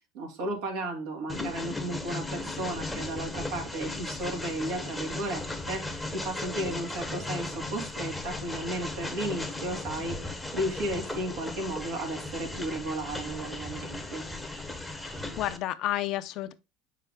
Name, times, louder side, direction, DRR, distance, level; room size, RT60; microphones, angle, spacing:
voice 1, 0.1-14.2, right 1 dB, 75° right, 2.6 m, -34 dB
Train, 1.3-15.6, left 2 dB, 5° left, 1.0 m, -36 dB
voice 2, 15.0-16.5, left 14 dB, 55° left, 0.6 m, -31 dB
6.8 x 5.6 x 3.6 m
supercardioid pair, 120°, 0 cm